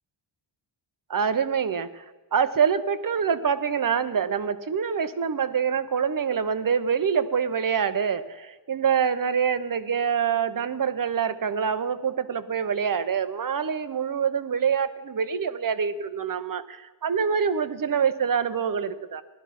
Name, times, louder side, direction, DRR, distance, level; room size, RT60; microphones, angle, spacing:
voice 1, 1.1-2.0 2.3-19.2, right 7 dB, 45° right, 11 dB, 0.8 m, -25 dB
17.5 x 12.5 x 5.9 m, 1.3 s
wide cardioid pair, 165°, 49 cm